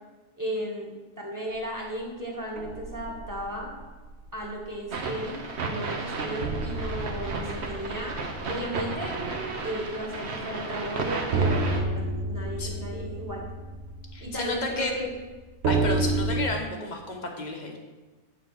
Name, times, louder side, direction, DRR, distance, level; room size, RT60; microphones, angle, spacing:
voice 1, 0.4-3.7 4.3-8.2 8.5-9.2 9.6-13.5 14.2-15.1, equal, 15° right, -2 dB, 1.5 m, -35 dB
sound 1, 2.6-4.5 4.9-5.1 5.5-5.6 6.4-10.3 10.6-10.7 11.3-16.5, right 3 dB, 70° right, 1.1 m, -31 dB
sound 2, 4.9-11.8, right 3 dB, 50° right, 1.1 m, -33 dB
voice 2, 12.6-12.9 14.1-15.0 15.7-17.8, left 2 dB, 35° left, 2 dB, 1.1 m, -32 dB
9.1 x 3.9 x 6.6 m, 1.3 s
omnidirectional pair, 1.6 m